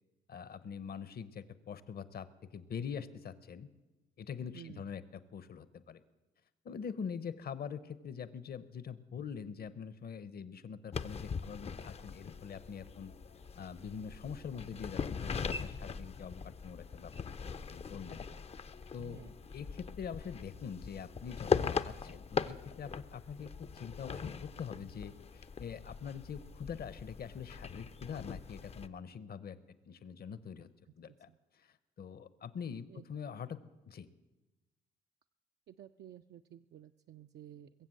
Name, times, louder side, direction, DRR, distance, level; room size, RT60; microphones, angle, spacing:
voice 1, 0.3-2.3 2.5-3.7 4.2-5.0 5.3-6.0 6.6-13.1 13.6-18.3 18.9-19.2 19.5-29.6 29.9-30.7 31.0-31.3 31.6-33.6 33.9-34.1, left 7 dB, 50° left, 16 dB, 0.9 m, -44 dB
sound 1, 10.9-28.9, left 5 dB, 30° left, 0.5 m, -40 dB
voice 2, 19.0-19.3 30.9-31.4 32.9-33.1 35.7-37.9, right 11 dB, 60° right, 6 dB, 0.4 m, -53 dB
21.5 x 7.6 x 7.7 m, 1.1 s
cardioid pair, 90°, 20 cm